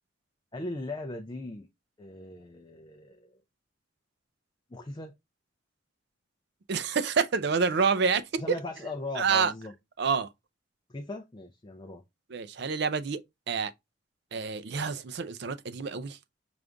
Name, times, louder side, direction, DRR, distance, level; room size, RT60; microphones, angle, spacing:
voice 1, 0.5-1.7 2.0-3.3 4.7-5.1 8.4-9.7 10.9-12.0, left 2 dB, 20° left, 0.4 m, -38 dB
voice 2, 6.7-8.6 9.1-9.5 10.0-10.3 12.3-13.2 13.5-13.7 14.3-16.2, right 5 dB, 55° right, 0.4 m, -27 dB
5.1 x 2.5 x 3.3 m
head